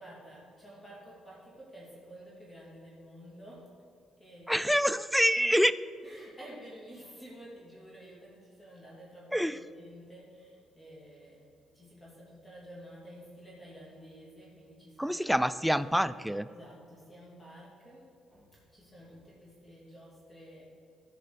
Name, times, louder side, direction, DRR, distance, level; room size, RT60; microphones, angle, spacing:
voice 1, 0.0-3.7 4.2-4.6 6.0-15.2 16.5-20.6, equal, 20° left, -5 dB, 2.8 m, -51 dB
voice 2, 4.5-5.7 9.3-9.6 15.0-16.5, equal, ahead, 14 dB, 0.3 m, -26 dB
14.0 x 5.0 x 5.1 m, 2.3 s
cardioid pair, 90°, 0 cm